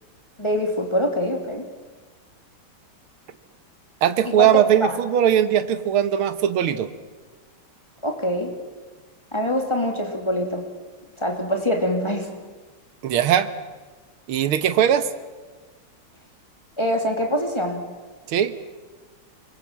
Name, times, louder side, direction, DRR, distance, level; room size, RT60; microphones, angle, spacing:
voice 1, 0.4-1.6 4.4-4.6 8.0-8.5 9.3-10.6 11.2-12.3 16.8-17.8, left 1 dB, 10° left, 3 dB, 2.6 m, -24 dB
voice 2, 4.0-6.9 13.0-13.5 14.3-15.1 18.3-18.5, right 10 dB, 75° right, 12 dB, 2.0 m, -19 dB
25.0 x 21.5 x 7.4 m, 1.3 s
omnidirectional pair, 2.4 m